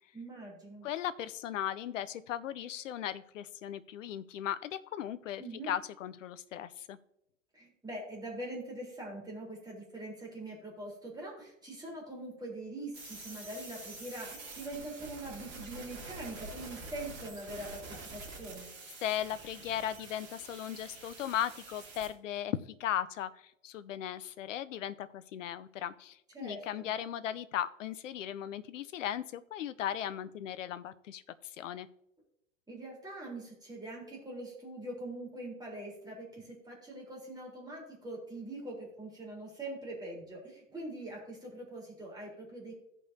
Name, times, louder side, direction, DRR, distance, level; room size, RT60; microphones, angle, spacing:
voice 1, 0.1-0.9 5.4-5.7 7.5-18.7 26.3-26.9 32.7-42.8, right 1 dB, 10° right, -3 dB, 3.7 m, -43 dB
voice 2, 0.8-7.0 19.0-31.2 31.6-31.9, left 10 dB, 75° left, 14 dB, 0.6 m, -37 dB
sound 1, 12.9-22.1, right 3 dB, 40° right, 2.9 m, -47 dB
16.5 x 5.4 x 2.7 m, 0.81 s
figure-of-eight pair, 85°, 39 cm